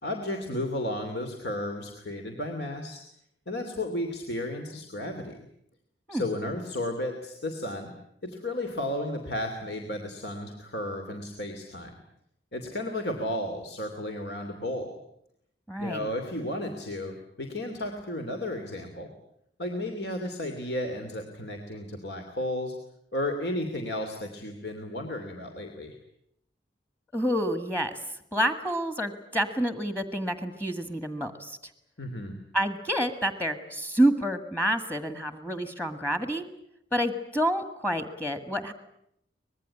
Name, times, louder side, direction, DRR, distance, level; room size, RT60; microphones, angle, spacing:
voice 1, 0.0-3.0 3.5-5.5 6.1-7.9 8.2-12.0 12.5-15.0 15.8-19.1 19.6-22.7 23.1-26.0 32.0-32.4, left 1 dB, 65° left, 4 dB, 2.9 m, -33 dB
voice 2, 15.7-16.1 27.1-28.0 28.3-31.6 32.5-36.4 36.9-38.7, equal, 10° left, 9 dB, 1.7 m, -28 dB
24.5 x 20.5 x 9.8 m, 0.75 s
head